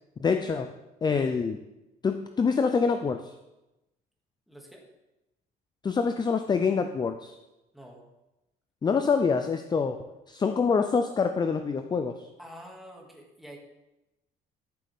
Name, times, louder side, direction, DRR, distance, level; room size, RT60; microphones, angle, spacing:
voice 1, 0.2-0.7 1.0-1.6 2.0-3.3 5.8-7.4 8.8-12.3, left 5 dB, 25° left, 8 dB, 0.5 m, -26 dB
voice 2, 4.5-4.9 7.7-8.0 12.4-13.6, equal, ahead, -1 dB, 2.3 m, -47 dB
13.0 x 7.4 x 3.6 m, 0.97 s
cardioid pair, 110°, 17 cm